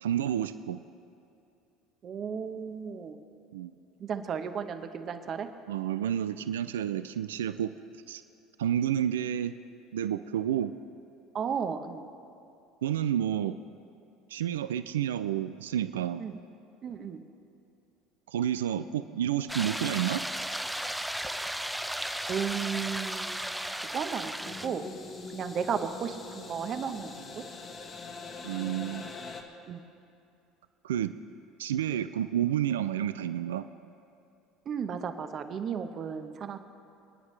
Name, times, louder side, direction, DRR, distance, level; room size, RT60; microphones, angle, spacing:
voice 1, 0.0-0.8 3.5-3.7 5.7-7.7 8.1-8.2 8.6-9.5 9.9-10.7 12.8-13.6 14.3-16.2 18.3-20.2 28.4-29.1 30.8-31.1 31.6-33.7, right 10 dB, 90° right, 12 dB, 0.3 m, -30 dB
voice 2, 2.0-3.2 4.0-5.5 11.3-12.1 16.2-16.4 16.8-17.2 22.3-23.5 23.8-24.8 25.3-27.4 29.7-29.8 34.7-36.6, right 7 dB, 45° right, 8 dB, 0.9 m, -34 dB
sound 1, 19.5-24.7, right 1 dB, 5° right, 0.6 m, -35 dB
sound 2, 24.4-29.4, left 4 dB, 40° left, 1.4 m, -43 dB
26.0 x 9.7 x 3.2 m, 2.6 s
hypercardioid pair, 75°, 0 cm